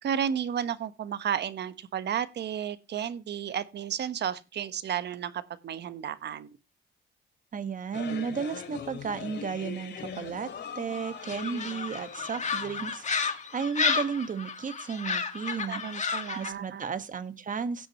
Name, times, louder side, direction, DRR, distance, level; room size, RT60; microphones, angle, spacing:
voice 1, 0.0-6.6 15.7-16.8, right 8 dB, 60° right, 1.2 m, -32 dB
voice 2, 7.5-15.8 16.3-17.9, right 6 dB, 40° right, 1.5 m, -34 dB
sound 1, 7.9-13.4, left 7 dB, 60° left, 2.9 m, -42 dB
sound 2, 11.2-16.5, left 5 dB, 35° left, 1.8 m, -32 dB
16.5 x 6.3 x 3.0 m
cardioid pair, 90°, 20 cm